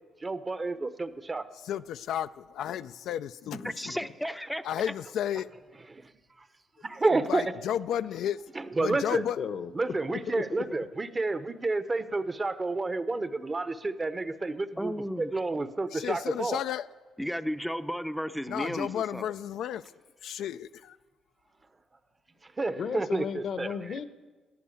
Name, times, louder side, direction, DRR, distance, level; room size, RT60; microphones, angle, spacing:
voice 1, 0.2-1.4 5.9-6.1 6.8-7.5 8.6-9.2 9.8-16.6 22.6-23.7, right 3 dB, 25° right, 12 dB, 0.8 m, -30 dB
voice 2, 1.5-4.0 4.6-5.5 6.9-8.4 8.8-9.4 15.9-16.9 18.5-19.8 20.2-21.0, left 10 dB, 80° left, 12 dB, 0.3 m, -33 dB
voice 3, 3.5-4.9 14.8-15.5 17.2-19.2, equal, ahead, 10 dB, 0.6 m, -34 dB
voice 4, 9.4-10.7 22.8-24.0, left 6 dB, 60° left, 12 dB, 0.8 m, -35 dB
13.0 x 9.5 x 8.4 m, 1.3 s
cardioid pair, 90°, 0 cm